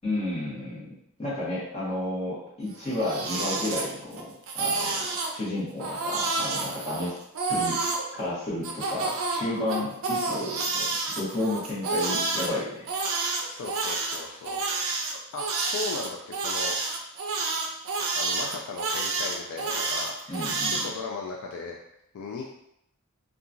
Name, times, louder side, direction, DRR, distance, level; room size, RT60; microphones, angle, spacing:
voice 1, 0.0-4.3 4.5-7.1 7.5-7.8 8.1-10.9 11.1-12.8 20.3-20.9, left 1 dB, 30° left, -9 dB, 1.1 m, -32 dB
Crying sobbing, 2.7-4.2 4.5-5.3 5.8-8.0 8.6-12.5 12.9-20.9, right 3 dB, 65° right, 0.4 m, -29 dB
voice 2, 13.3-14.6 15.3-16.8 18.2-21.8 22.1-22.5, left 4 dB, 70° left, 0 dB, 0.3 m, -37 dB
2.8 x 2.3 x 2.5 m, 0.77 s
head